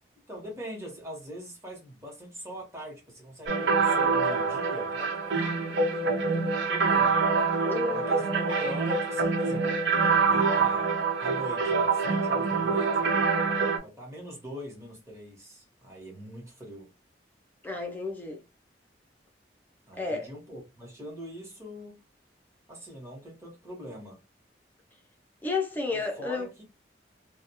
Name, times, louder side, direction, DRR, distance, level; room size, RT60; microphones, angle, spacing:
voice 1, 0.3-7.2 7.9-10.9 11.2-13.1 13.8-16.9 19.9-22.0 22.7-24.2 25.9-26.6, equal, 15° right, 1.0 m, -42 dB
sound 1, 3.5-13.8, right 4 dB, 75° right, 0.6 m, -25 dB
voice 2, 7.7-8.4 17.6-18.4 20.0-20.3 25.4-26.5, left 3 dB, 10° left, 0.5 m, -32 dB
2.3 x 2.2 x 2.8 m
head